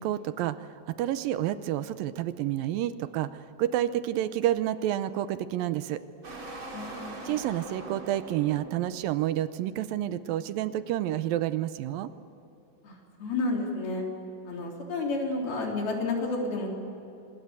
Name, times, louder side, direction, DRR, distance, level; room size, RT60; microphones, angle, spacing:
voice 1, 0.0-6.0 7.3-12.1, right 12 dB, 80° right, 13 dB, 2.4 m, -29 dB
sound 1, 6.2-9.3, right 2 dB, 35° right, 3.8 m, -41 dB
voice 2, 6.7-7.1 12.8-12.9 13.2-14.1 14.5-16.7, left 3 dB, 85° left, 0 dB, 5.7 m, -30 dB
26.0 x 20.5 x 8.1 m, 2.9 s
omnidirectional pair, 4.3 m